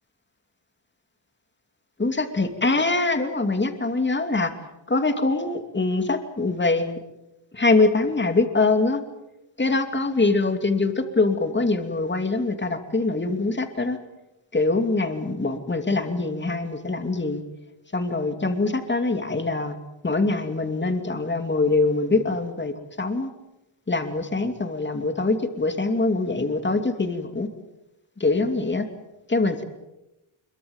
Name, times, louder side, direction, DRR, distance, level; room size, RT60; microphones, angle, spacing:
voice 1, 2.0-4.5 4.9-7.0 7.5-9.0 9.6-14.0 14.5-17.4 17.9-19.8 20.0-23.3 23.9-27.5 28.2-28.9 29.3-29.6, left 3 dB, 20° left, 6 dB, 2.7 m, -23 dB
26.0 x 23.5 x 7.3 m, 0.95 s
wide cardioid pair, 125°, 48 cm